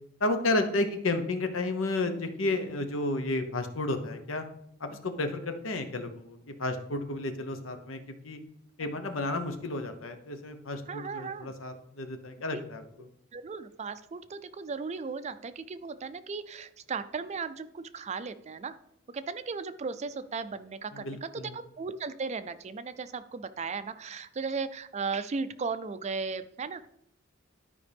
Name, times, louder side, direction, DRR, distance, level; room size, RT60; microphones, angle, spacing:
voice 1, 0.2-4.4 4.8-8.4 8.8-12.8 20.9-21.6, left 2 dB, 80° left, 7 dB, 1.0 m, -32 dB
voice 2, 10.9-11.5 12.5-12.6 13.3-18.8 19.1-26.9, right 4 dB, 35° right, 12 dB, 0.4 m, -36 dB
12.0 x 5.0 x 3.5 m, 0.76 s
head